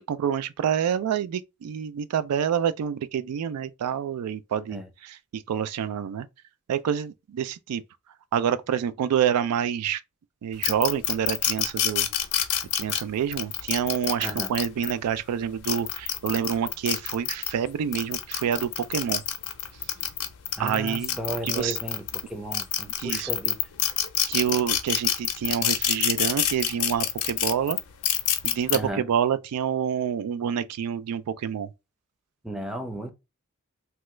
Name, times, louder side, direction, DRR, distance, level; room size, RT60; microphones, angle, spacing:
voice 1, 0.0-6.3 6.7-7.8 8.3-10.0 10.4-12.1 12.8-19.2 20.6-21.8 23.0-23.3 24.3-27.8 28.4-31.7, right 8 dB, 85° right, 0.3 m, -27 dB
sound 1, 10.6-14.9 15.5-17.5 17.9-22.2 22.5-28.8, left 11 dB, 85° left, 0.5 m, -26 dB
voice 2, 14.2-14.5 20.6-22.0 22.3-23.6 28.7-29.0 32.4-33.1, right 1 dB, ahead, 0.4 m, -34 dB
3.0 x 2.3 x 3.0 m
head